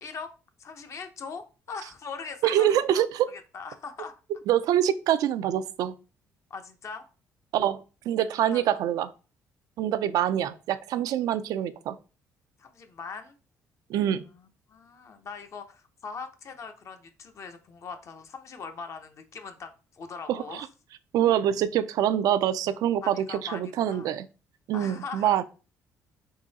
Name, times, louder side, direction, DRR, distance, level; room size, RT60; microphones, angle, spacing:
voice 1, 0.0-0.3 0.6-2.7 3.3-4.1 6.5-7.0 8.5-8.8 12.6-13.4 14.1-20.7 23.0-24.1 24.7-25.4, left 5 dB, 50° left, 7 dB, 0.7 m, -41 dB
voice 2, 2.4-3.3 4.5-6.0 7.5-9.1 9.8-12.0 13.9-14.2 20.3-20.7 21.1-24.3 24.7-25.4, right 11 dB, 75° right, 14 dB, 0.4 m, -25 dB
3.8 x 2.7 x 4.0 m, 0.33 s
cardioid pair, 90°, 6 cm